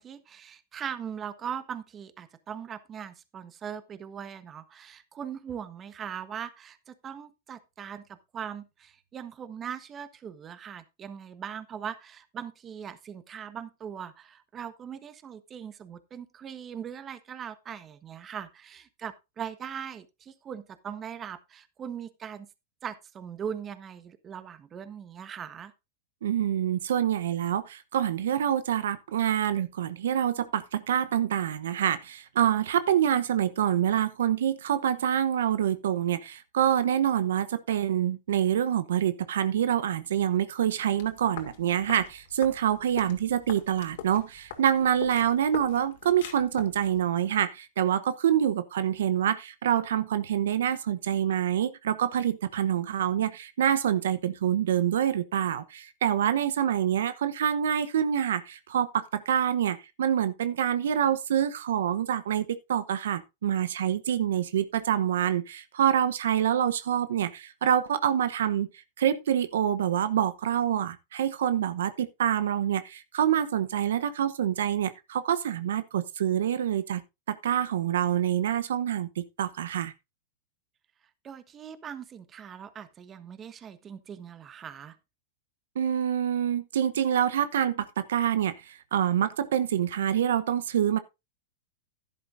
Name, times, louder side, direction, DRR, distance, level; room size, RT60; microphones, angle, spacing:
voice 1, 0.0-22.5 22.8-25.7 81.2-84.9, right 8 dB, 25° right, 1.2 m, -40 dB
voice 2, 26.2-68.7 69.0-77.0 77.3-79.9 85.7-91.0, right 10 dB, 80° right, 0.9 m, -26 dB
sound 1, 41.0-47.0, left 9 dB, 70° left, 2.5 m, -44 dB
11.5 x 11.0 x 2.6 m
hypercardioid pair, 120°, 0 cm